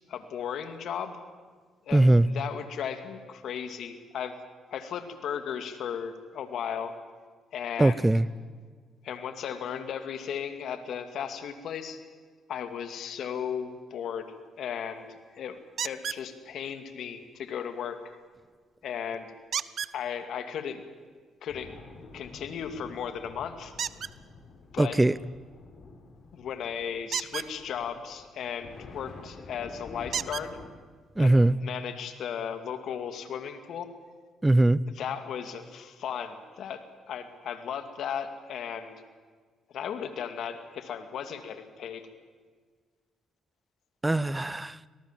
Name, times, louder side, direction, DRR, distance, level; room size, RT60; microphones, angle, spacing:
voice 1, 0.1-1.2 1.9-2.1 2.3-4.4 4.7-6.9 7.5-8.1 9.0-12.0 12.5-14.3 14.6-15.1 15.3-15.6 15.8-18.0 18.8-19.3 19.9-20.8 21.4-21.7 22.1-23.7 24.7-25.0 26.3-30.6 31.2-33.9 35.0-38.9 39.7-42.0, left 8 dB, 70° left, 9 dB, 2.4 m, -35 dB
voice 2, 1.9-2.3 7.8-8.3 24.8-25.2 31.2-31.5 34.4-34.8 44.0-44.8, right 2 dB, 15° right, 20 dB, 0.8 m, -21 dB
sound 1, 15.8-16.2 19.5-19.9 23.8-24.1 27.0-27.5 29.2-29.3 30.1-30.5 31.5-31.6 32.0-32.1, right 8 dB, 60° right, 0.8 m, -32 dB
sound 2, 21.5-30.7, left 3 dB, 55° left, 3.8 m, -49 dB
26.0 x 19.0 x 7.5 m, 1.5 s
supercardioid pair, 70°, 0 cm